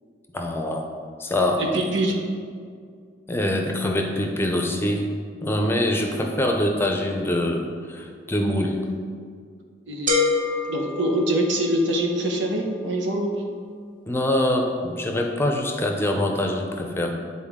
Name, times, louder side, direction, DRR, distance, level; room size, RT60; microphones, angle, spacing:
voice 1, 0.3-0.9 1.2-1.8 3.3-5.1 5.4-8.8 14.1-17.1, left 1 dB, 15° left, 2 dB, 0.6 m, -24 dB
voice 2, 1.6-2.2 6.1-6.2 9.9-10.1 10.7-13.3, right 1 dB, 90° right, 1 dB, 1.1 m, -24 dB
sound 1, 10.1-11.9, left 4 dB, 45° right, 1.1 m, -25 dB
8.9 x 4.2 x 3.6 m, 2.1 s
head